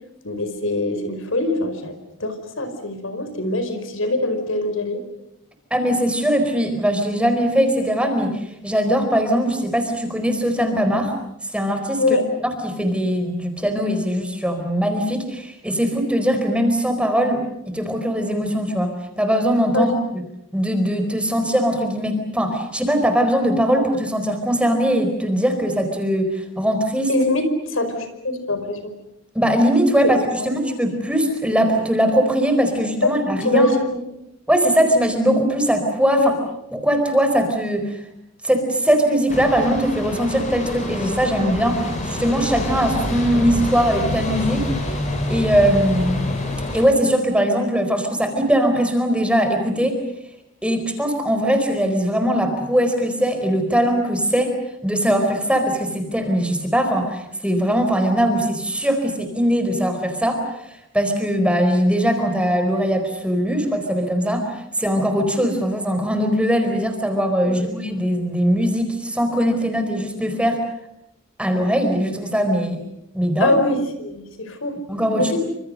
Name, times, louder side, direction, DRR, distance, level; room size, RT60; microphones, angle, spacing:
voice 1, 0.2-1.9 2.2-5.0 12.0-12.2 19.7-19.9 27.1-28.9 30.0-30.5 33.0-33.1 33.4-34.0 36.1-36.3 67.4-67.5 73.4-74.8 75.1-75.4, left 2 dB, 80° left, 8 dB, 5.0 m, -23 dB
voice 2, 5.7-11.1 11.5-12.0 12.6-20.2 20.5-27.1 29.3-33.7 34.5-36.3 36.7-38.0 38.4-44.6 45.3-46.2 46.7-50.0 50.6-60.4 60.9-70.6 71.4-72.8 73.1-73.6 74.9-75.4, equal, 5° right, 6 dB, 4.4 m, -20 dB
sound 1, 39.3-46.9, left 1 dB, 35° left, 6.8 m, -26 dB
28.5 x 26.5 x 6.5 m, 0.82 s
head